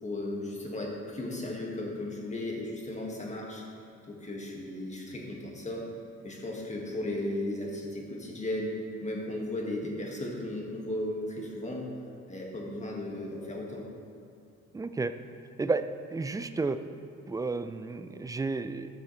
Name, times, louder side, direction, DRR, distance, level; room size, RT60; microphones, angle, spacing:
voice 1, 0.0-3.6 4.1-5.9 6.2-8.7 9.0-11.9 12.3-13.8, left 1 dB, 25° left, -2 dB, 1.9 m, -35 dB
voice 2, 14.7-15.1 15.6-15.8 16.1-16.8 17.3-18.9, right 3 dB, 10° right, 11 dB, 0.4 m, -31 dB
13.0 x 6.6 x 3.3 m, 2.6 s
cardioid pair, 90°, 30 cm